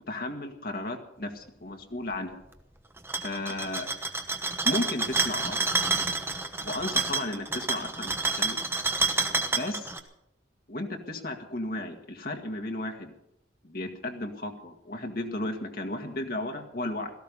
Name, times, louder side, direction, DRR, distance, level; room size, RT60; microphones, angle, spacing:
voice 1, 0.1-2.4 3.2-3.9 4.6-5.6 6.6-8.6 9.4-9.9 10.7-13.1 13.6-17.1, left 1 dB, 50° left, 3 dB, 2.0 m, -34 dB
sound 1, 3.0-10.0, right 3 dB, 15° right, 1.1 m, -28 dB
17.5 x 14.0 x 5.4 m, 0.82 s
head